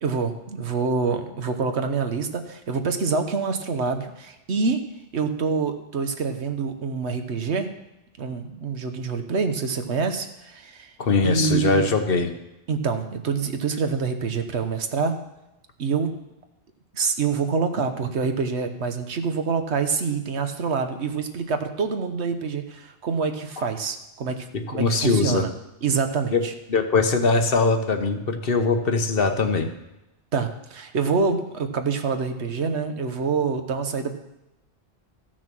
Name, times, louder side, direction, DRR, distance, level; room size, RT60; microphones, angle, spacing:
voice 1, 0.0-4.8 5.1-7.7 8.2-10.9 11.2-11.9 12.7-15.2 15.8-16.1 16.9-24.5 24.7-25.5 25.8-26.5 30.3-34.1, right 5 dB, 75° right, 7 dB, 1.3 m, -26 dB
voice 2, 11.0-12.3 24.5-25.4 26.3-26.4 26.7-29.7, left 4 dB, 60° left, 6 dB, 1.1 m, -21 dB
14.0 x 6.3 x 6.1 m, 0.94 s
omnidirectional pair, 1.1 m